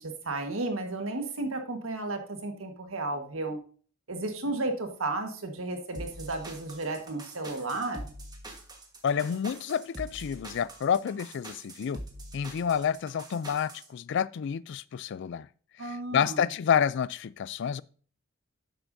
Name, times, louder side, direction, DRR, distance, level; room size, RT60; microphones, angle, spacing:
voice 1, 0.0-3.6 4.1-8.1 15.8-16.4, right 2 dB, 85° right, 1.5 m, -33 dB
sound 1, 5.9-13.9, right 1 dB, 20° right, 1.4 m, -44 dB
voice 2, 9.0-12.0 12.3-15.5 15.8-17.8, left 7 dB, 60° left, 0.3 m, -29 dB
10.5 x 7.8 x 2.7 m
head